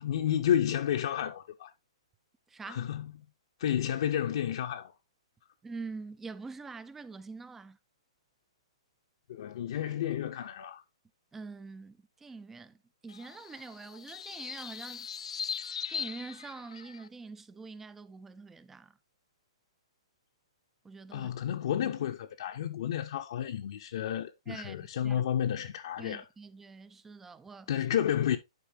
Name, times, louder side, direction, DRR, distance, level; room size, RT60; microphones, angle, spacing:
voice 1, 0.0-1.7 2.7-3.1 3.6-4.9 9.3-10.8 21.1-26.2 27.7-28.4, left 10 dB, 60° left, 0.7 m, -31 dB
voice 2, 2.5-2.8 5.6-7.8 11.3-15.1 15.9-19.0 20.8-21.3 24.5-25.2 26.0-27.7, right 4 dB, 10° right, 0.4 m, -45 dB
sound 1, 13.1-17.1, left 7 dB, 90° left, 0.4 m, -40 dB
10.5 x 4.4 x 2.8 m
hypercardioid pair, 150°, 3 cm